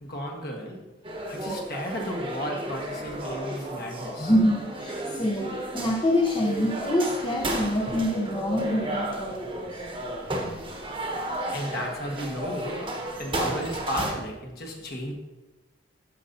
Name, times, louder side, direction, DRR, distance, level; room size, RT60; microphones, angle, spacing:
voice 1, 0.0-0.8 1.3-4.3 11.5-15.1, equal, 50° left, 1 dB, 1.3 m, -34 dB
sound 1, 1.0-14.1, right 1 dB, 25° right, 1.0 m, -33 dB
voice 2, 4.2-9.8, equal, 25° left, -1 dB, 0.6 m, -26 dB
13.0 x 5.4 x 2.7 m, 1.1 s
head